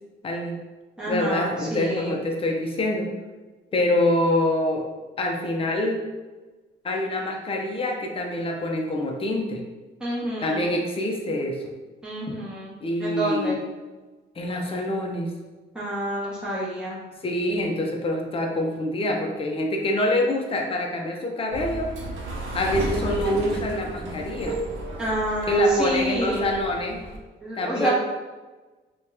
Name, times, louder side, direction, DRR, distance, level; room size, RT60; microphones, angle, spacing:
voice 1, 0.2-0.6 1.1-3.1 3.7-4.8 5.2-6.0 6.8-9.6 10.4-11.6 12.8-13.6 14.4-15.3 17.2-21.9 22.5-24.6 25.5-27.0 27.6-27.9, left 1 dB, 30° left, 1 dB, 0.6 m, -25 dB
voice 2, 1.0-2.2 10.0-10.7 12.0-12.7 13.0-13.6 15.7-17.0 25.0-26.5 27.4-27.9, right 1 dB, 5° right, -8 dB, 1.0 m, -28 dB
sound 1, 21.5-27.2, right 2 dB, 75° right, 0.7 m, -33 dB
2.8 x 2.3 x 3.4 m, 1.2 s
cardioid pair, 90°, 20 cm